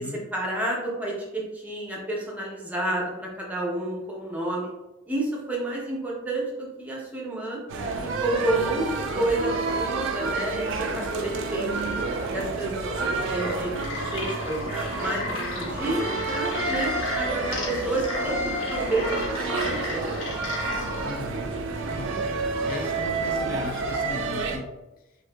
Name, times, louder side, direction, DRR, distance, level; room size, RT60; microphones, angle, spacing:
voice 1, 0.3-4.7 5.1-7.6 8.0-11.9 12.3-12.9 13.3-15.3 15.6-20.4, right 2 dB, 10° right, -3 dB, 0.6 m, -30 dB
sound 1, 7.7-24.6, right 3 dB, 65° right, 0.4 m, -29 dB
sound 2, 13.2-21.1, left 2 dB, 75° left, 0.7 m, -34 dB
voice 2, 21.0-21.5 21.8-24.7, left 2 dB, 45° left, 5 dB, 0.3 m, -38 dB
2.7 x 2.5 x 2.2 m, 0.98 s
head